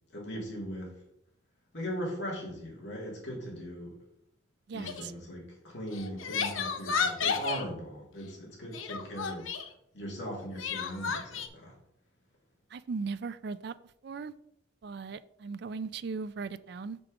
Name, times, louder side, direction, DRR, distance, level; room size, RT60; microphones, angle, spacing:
voice 1, 0.1-1.0 1.7-4.0 4.7-9.5 9.9-11.7, equal, 65° left, -2 dB, 2.6 m, -39 dB
voice 2, 4.7-5.1 12.7-13.7 14.0-14.3 14.8-17.0, right 4 dB, 55° right, 14 dB, 0.3 m, -38 dB
Crying sobbing, 4.8-5.1 5.9-7.6 8.7-9.7 10.6-11.5, left 6 dB, 85° left, 0.7 m, -32 dB
5.9 x 5.2 x 4.8 m, 0.74 s
head